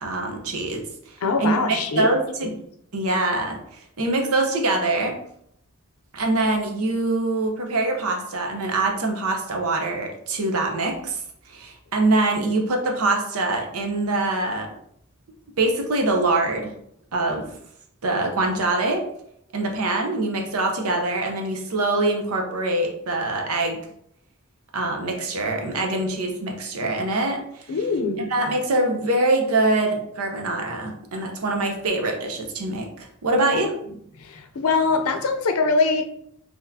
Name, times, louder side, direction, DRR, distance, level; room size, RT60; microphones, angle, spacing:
voice 1, 0.0-0.8 1.4-2.5 2.9-3.6 4.0-5.1 6.1-11.2 11.5-14.7 15.6-16.7 17.1-17.5 18.0-19.0 19.5-23.8 24.7-27.8 28.3-33.7, right 2 dB, 85° right, 0.7 m, -24 dB
voice 2, 1.2-2.1 2.4-2.6 27.7-28.3 33.3-33.6 34.2-36.0, left 4 dB, 85° left, 0.5 m, -23 dB
4.0 x 2.8 x 2.7 m
head